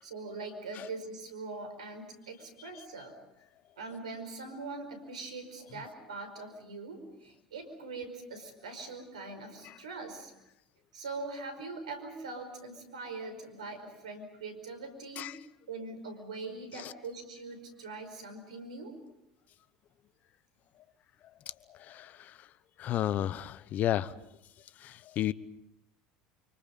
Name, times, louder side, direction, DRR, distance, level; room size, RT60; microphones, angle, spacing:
voice 1, 0.0-3.1 3.8-10.3 10.9-15.4 15.7-18.9, right 3 dB, 85° right, 8 dB, 4.9 m, -42 dB
voice 2, 22.8-24.1 24.8-25.3, left 12 dB, 50° left, 18 dB, 1.0 m, -31 dB
29.5 x 25.5 x 5.5 m, 0.89 s
hypercardioid pair, 75°, 4 cm